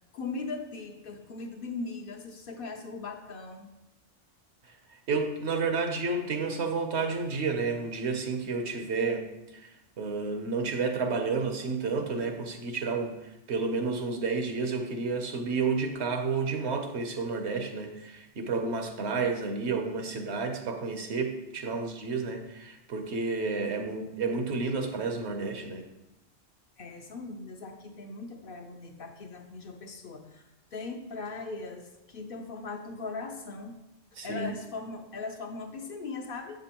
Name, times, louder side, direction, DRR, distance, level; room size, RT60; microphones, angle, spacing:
voice 1, 0.1-3.7 26.8-33.8 34.2-36.6, left 3 dB, 60° left, 4 dB, 0.7 m, -39 dB
voice 2, 4.7-9.3 9.5-25.8 34.1-34.5, right 4 dB, 70° right, 5 dB, 1.0 m, -31 dB
7.5 x 6.0 x 2.9 m, 0.95 s
omnidirectional pair, 1.2 m